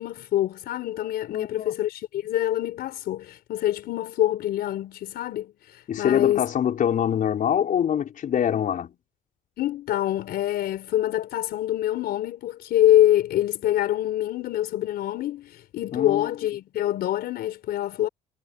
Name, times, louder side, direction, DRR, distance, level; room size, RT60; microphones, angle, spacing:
voice 1, 0.0-6.4 9.6-18.1, left 13 dB, 70° left, 4.5 m, -25 dB
voice 2, 1.3-1.7 5.9-9.0 15.9-16.3, left 9 dB, 50° left, 5.6 m, -24 dB
cardioid pair, 110°, 17 cm